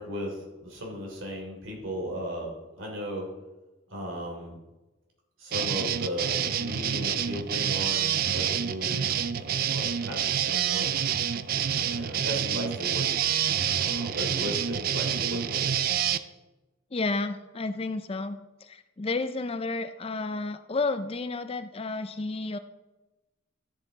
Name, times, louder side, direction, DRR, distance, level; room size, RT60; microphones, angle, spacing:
voice 1, 0.0-3.3 3.9-4.6 5.4-11.0 11.9-13.1 13.8-15.7, equal, 75° right, 0 dB, 3.2 m, -36 dB
sound 1, 5.5-16.2, right 9 dB, 45° right, 0.4 m, -27 dB
voice 2, 16.9-22.6, left 3 dB, 30° left, 10 dB, 0.4 m, -31 dB
13.0 x 7.2 x 3.9 m, 1.1 s
head